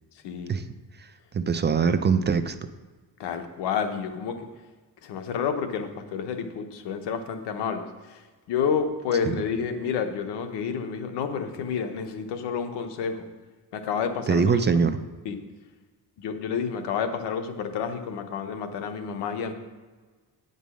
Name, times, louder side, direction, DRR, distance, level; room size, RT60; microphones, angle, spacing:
voice 1, 0.2-0.6 3.2-4.5 5.0-13.3 13.7-14.4 15.2-15.4 16.2-19.5, left 6 dB, 90° left, 7 dB, 1.1 m, -30 dB
voice 2, 1.3-2.5 9.3-9.4 14.3-15.0, right 5 dB, 25° right, 10 dB, 0.5 m, -22 dB
9.5 x 5.4 x 6.3 m, 1.3 s
cardioid pair, 110°, 40 cm